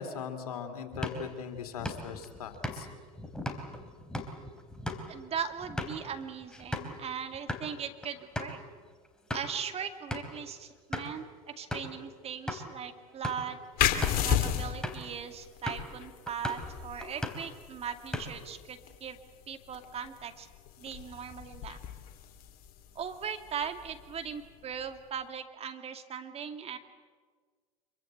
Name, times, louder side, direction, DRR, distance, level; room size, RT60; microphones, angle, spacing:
voice 1, 0.0-2.9, left 6 dB, 75° left, 7 dB, 3.0 m, -39 dB
sound 1, 0.9-7.0 7.3-7.7 8.0-8.1 8.3-8.6 9.0-9.6 10.1-10.4 10.9-11.2 11.7-12.0 12.5-12.6 13.1-13.5 13.9-14.3 14.8-15.1 15.7-15.9 16.3-16.7 17.0-17.5 17.9-18.5, left 1 dB, 5° left, 3.5 m, -38 dB
voice 2, 5.1-8.6 9.3-13.6 14.2-19.2 19.5-20.5 20.8-21.8 22.9-26.8, right 7 dB, 30° right, 7 dB, 2.4 m, -39 dB
sound 2, 13.8-25.1, left 9 dB, 50° left, 3.0 m, -35 dB
26.0 x 23.5 x 8.1 m, 1.5 s
hypercardioid pair, 85°, 19 cm